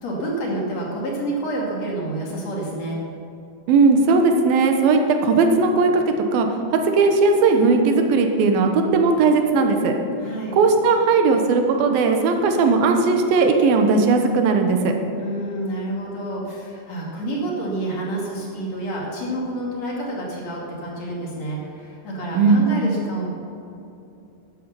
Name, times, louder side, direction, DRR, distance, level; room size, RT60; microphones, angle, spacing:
voice 1, 0.0-3.0 10.2-10.6 15.2-23.3, right 1 dB, 50° left, -3 dB, 3.4 m, -28 dB
voice 2, 3.7-6.5 6.7-10.0 10.5-14.9 22.3-22.6, right 4 dB, 85° right, 4 dB, 3.0 m, -17 dB
13.0 x 11.5 x 5.8 m, 2.8 s
omnidirectional pair, 4.2 m